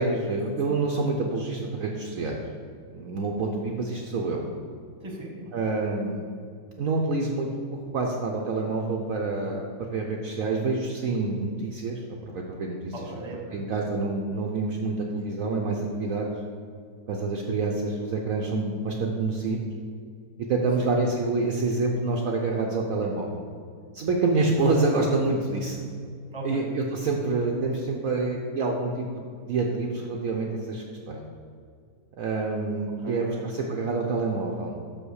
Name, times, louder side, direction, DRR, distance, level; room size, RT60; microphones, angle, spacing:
voice 1, 0.0-2.4 2.9-4.4 5.5-6.3 6.8-12.9 13.5-16.3 17.1-19.6 20.5-23.4 23.9-25.8 26.4-31.2 32.2-34.8, right 3 dB, 65° right, 0 dB, 1.0 m, -27 dB
voice 2, 5.0-5.5 12.9-13.6 20.8-20.9 26.3-26.7 33.0-33.4, right 2 dB, 20° right, 0 dB, 1.1 m, -37 dB
6.2 x 5.5 x 6.4 m, 2.2 s
omnidirectional pair, 1.8 m